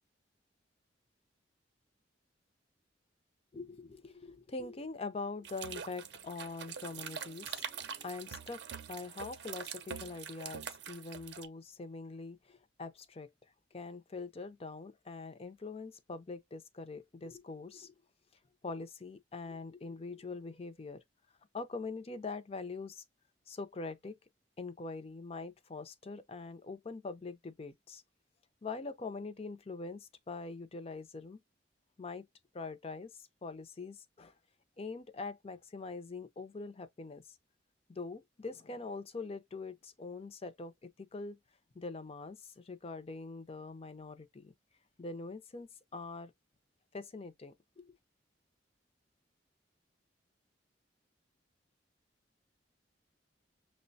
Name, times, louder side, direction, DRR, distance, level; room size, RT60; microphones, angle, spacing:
voice 1, 3.5-13.3 13.7-17.9 18.6-21.0 21.5-23.0 23.5-24.2 24.6-28.0 28.6-31.4 32.0-32.3 32.5-34.3 34.8-37.2 37.9-41.4 41.7-44.5 45.0-46.3 46.9-47.9, left 3 dB, 35° left, 0.5 m, -43 dB
sound 1, 5.4-11.5, right 7 dB, 65° right, 0.6 m, -44 dB
6.1 x 2.1 x 2.6 m
head